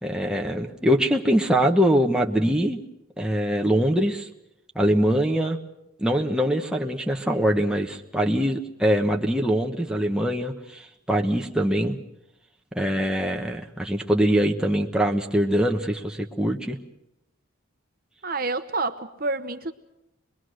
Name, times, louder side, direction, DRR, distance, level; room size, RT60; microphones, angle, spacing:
voice 1, 0.0-2.8 3.2-4.3 4.7-5.6 6.0-12.0 12.7-16.8, equal, 5° right, 1 dB, 1.2 m, -23 dB
voice 2, 18.2-19.7, right 3 dB, 45° right, 8 dB, 1.0 m, -28 dB
25.0 x 21.0 x 6.5 m, 0.88 s
head